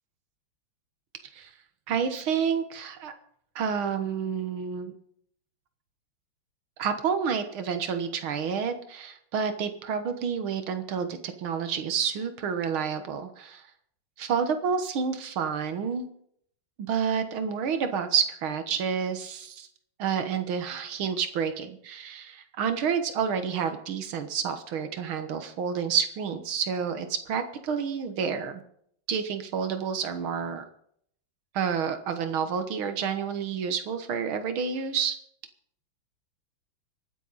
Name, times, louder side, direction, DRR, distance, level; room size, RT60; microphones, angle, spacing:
voice 1, 1.9-3.1 3.6-4.9 6.8-13.6 14.2-16.1 16.8-19.7 20.0-28.6 29.1-30.6 31.5-35.2, right 7 dB, 80° right, 9 dB, 2.1 m, -29 dB
25.0 x 9.2 x 4.1 m, 0.68 s
omnidirectional pair, 2.2 m